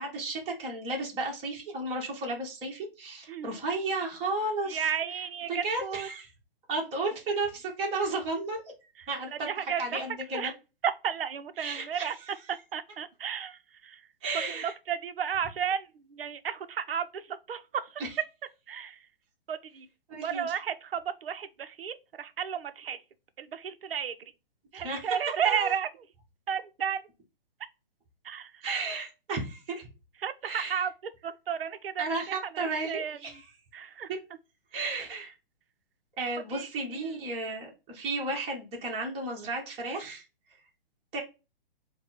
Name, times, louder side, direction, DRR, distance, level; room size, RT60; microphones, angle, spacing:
voice 1, 0.0-4.9 5.5-6.3 6.7-8.6 9.1-10.5 11.6-12.6 14.2-14.7 18.0-18.2 20.1-20.6 24.8-25.2 25.4-25.7 28.6-29.9 30.4-30.9 32.0-33.5 34.1-34.2 34.7-35.3 36.2-40.2 41.1-41.2, right 2 dB, 20° right, 1.4 m, -33 dB
voice 2, 4.7-6.1 9.0-9.1 9.5-9.8 10.3-10.5 10.8-12.2 12.5-14.0 14.6-17.2 17.5-17.8 18.7-19.0 19.5-19.9 20.2-23.0 23.4-24.1 24.7-25.9 26.5-27.0 28.2-28.5 30.2-30.9 31.2-33.2 33.7-34.1 36.5-36.7, right 8 dB, 75° right, 0.7 m, -33 dB
4.1 x 2.2 x 4.3 m
hypercardioid pair, 135°, 29 cm